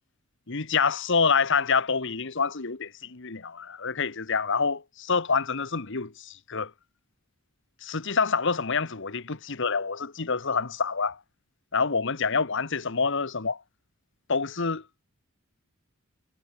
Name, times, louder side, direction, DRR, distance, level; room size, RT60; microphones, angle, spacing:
voice 1, 0.5-6.7 7.8-11.2 11.7-13.6 14.3-14.8, left 5 dB, 60° left, 1.4 m, -27 dB
head